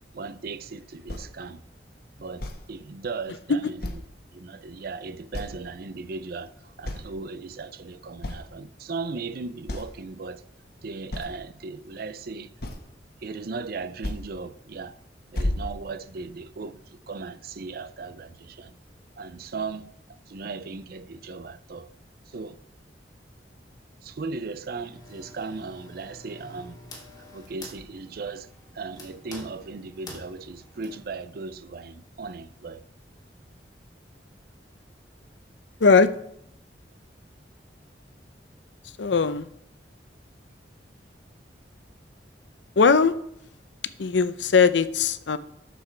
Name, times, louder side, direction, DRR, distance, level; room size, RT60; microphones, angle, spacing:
voice 1, 0.1-1.6 2.2-3.8 4.3-10.4 10.8-12.5 13.2-15.0 15.3-16.8 17.1-18.8 19.2-19.9 20.3-21.9 22.3-22.6 24.0-26.8 27.2-28.5 28.7-32.8, right 4 dB, 55° right, 0.5 m, -37 dB
sound 1, 1.1-1.3 2.4-2.6 3.8-4.2 4.6-4.7 5.3-5.7 6.1-6.5 6.8-7.2 7.8-7.9 8.2-8.5 9.2-9.3 9.7-9.9 11.1-11.4 12.6-13.0 14.0-14.2 14.7-14.9 15.3-16.3, left 1 dB, 60° left, 1.3 m, -32 dB
sound 2, 24.6-31.0, left 2 dB, 25° left, 2.7 m, -47 dB
voice 2, 35.8-36.1 39.0-39.5 42.8-43.1 44.0-45.4, left 5 dB, 90° left, 0.6 m, -19 dB
12.0 x 7.0 x 4.5 m
head